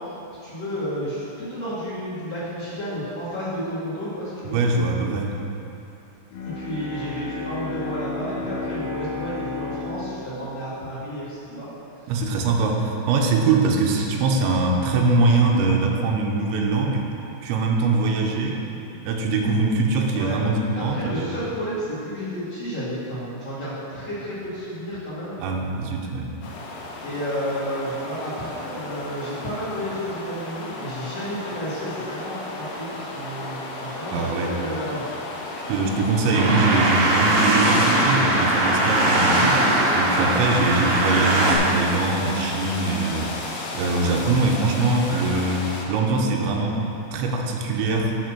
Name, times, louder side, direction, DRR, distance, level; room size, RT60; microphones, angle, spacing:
voice 1, 0.4-4.6 6.4-11.7 12.0-12.1 20.1-20.4 20.7-25.3 27.0-35.1, equal, 40° left, -12 dB, 2.8 m, -31 dB
voice 2, 4.5-5.3 12.1-17.0 17.4-18.6 19.1-21.4 25.4-26.3 34.1-34.5 35.7-39.6 39.9-48.2, right 3 dB, 90° right, 1 dB, 3.1 m, -22 dB
Bowed string instrument, 6.3-11.6, left 3 dB, 85° left, 3.9 m, -33 dB
sound 1, 26.4-45.9, left 2 dB, 70° left, 2.6 m, -34 dB
sound 2, 36.3-41.6, right 1 dB, 70° right, 1.2 m, -20 dB
12.0 x 4.4 x 6.1 m, 2.9 s
omnidirectional pair, 5.2 m